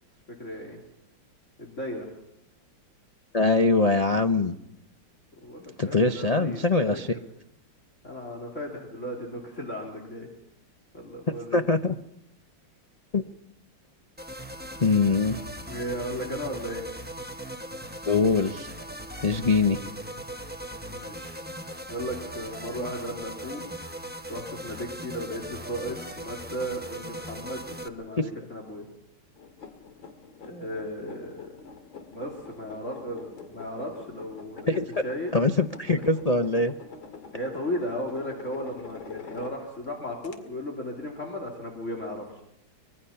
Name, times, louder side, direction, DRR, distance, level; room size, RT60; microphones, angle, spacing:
voice 1, 0.3-0.8 1.6-2.1 5.4-7.0 8.0-10.3 10.9-11.7 15.7-16.8 20.9-21.4 21.9-23.6 24.3-28.9 30.4-31.5 32.1-34.8 35.0-35.4 37.3-42.2, equal, 40° left, 1 dB, 3.4 m, -35 dB
voice 2, 3.3-4.5 5.8-7.1 11.5-12.0 13.1-13.2 14.8-15.4 18.1-18.7 19.2-19.8 34.7-34.9 35.3-36.7, left 3 dB, 65° left, 5 dB, 0.3 m, -23 dB
sound 1, 14.2-27.9, right 1 dB, 5° right, 0.8 m, -39 dB
sound 2, 29.4-39.9 40.2-40.4, left 6 dB, 85° left, 2.9 m, -45 dB
25.0 x 22.0 x 5.8 m, 0.78 s
omnidirectional pair, 2.1 m